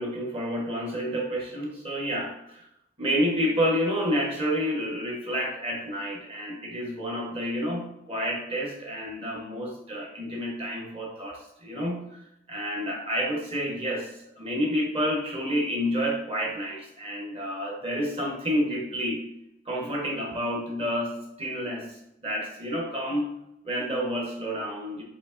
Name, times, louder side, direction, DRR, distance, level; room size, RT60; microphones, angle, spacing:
voice 1, 0.0-2.6 3.0-19.2 19.6-23.3 23.6-25.0, equal, 30° right, -2 dB, 0.9 m, -29 dB
6.6 x 2.8 x 2.5 m, 0.81 s
head